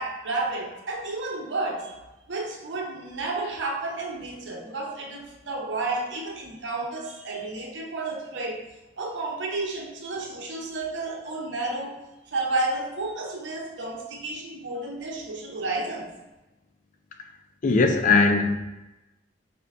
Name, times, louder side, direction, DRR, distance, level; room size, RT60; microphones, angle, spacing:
voice 1, 0.0-1.9 2.3-8.7 9.0-12.0 12.3-16.1, right 2 dB, 80° right, 0 dB, 0.8 m, -31 dB
voice 2, 17.6-18.6, left 3 dB, 45° left, 6 dB, 0.4 m, -19 dB
5.1 x 2.3 x 3.4 m, 1.0 s
head